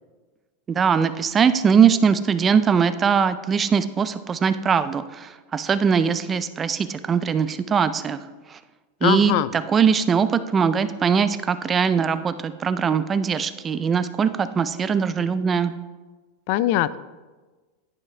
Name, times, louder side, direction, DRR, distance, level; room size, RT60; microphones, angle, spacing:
voice 1, 0.7-8.2 8.5-8.6 9.0-15.7, right 6 dB, 20° right, 12 dB, 0.4 m, -21 dB
voice 2, 9.0-9.5 16.5-17.0, left 14 dB, 50° left, 17 dB, 0.4 m, -21 dB
10.5 x 9.8 x 3.3 m, 1.3 s
supercardioid pair, 160°, 0 cm